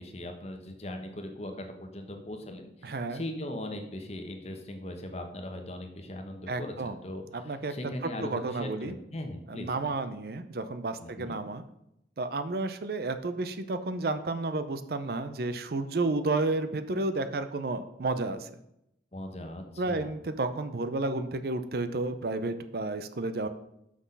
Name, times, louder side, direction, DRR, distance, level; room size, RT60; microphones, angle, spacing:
voice 1, 0.0-9.9 11.0-11.3 19.1-20.1, left 1 dB, 35° left, 5 dB, 1.0 m, -40 dB
voice 2, 2.8-3.2 6.5-7.0 7.3-7.7 8.0-8.9 9.5-11.6 12.2-18.6 19.8-23.5, right 2 dB, 55° right, 10 dB, 0.5 m, -31 dB
6.1 x 6.0 x 5.4 m, 0.81 s
head